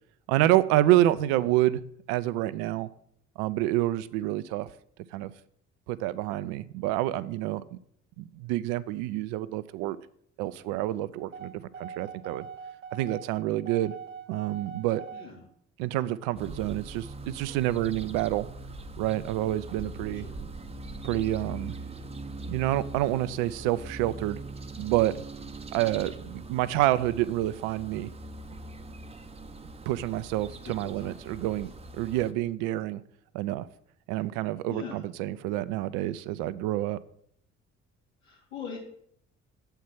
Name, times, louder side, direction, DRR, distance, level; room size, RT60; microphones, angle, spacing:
voice 1, 0.3-1.8 2.1-2.9 3.4-4.7 5.1-5.3 5.9-7.6 8.2-10.0 10.4-12.5 12.9-13.9 14.3-15.0 15.8-18.5 19.0-20.3 21.0-21.8 22.5-24.4 24.8-25.2 25.7-28.1 29.9-33.0 33.3-33.7 34.1-37.0, right 15 dB, 60° right, 17 dB, 0.6 m, -28 dB
sound 1, 11.3-15.3, right 6 dB, 80° right, 1.1 m, -42 dB
voice 2, 15.1-15.5 20.1-20.4 30.5-31.6 34.7-35.0 38.2-38.8, left 5 dB, 80° left, -3 dB, 2.5 m, -43 dB
sound 2, 16.4-32.3, right 2 dB, 15° right, 0.7 m, -42 dB
8.2 x 4.6 x 7.2 m, 0.66 s
figure-of-eight pair, 45°, 37 cm